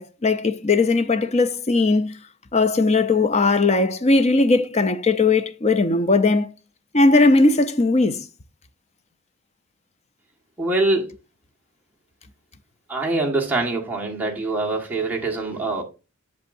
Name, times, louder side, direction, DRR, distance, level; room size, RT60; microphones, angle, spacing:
voice 1, 0.0-2.2 2.5-6.5 6.9-8.3, left 3 dB, 30° left, 0.5 m, -18 dB
voice 2, 10.6-11.1 12.9-15.8, right 2 dB, 10° right, 1.5 m, -24 dB
8.1 x 6.7 x 2.6 m
head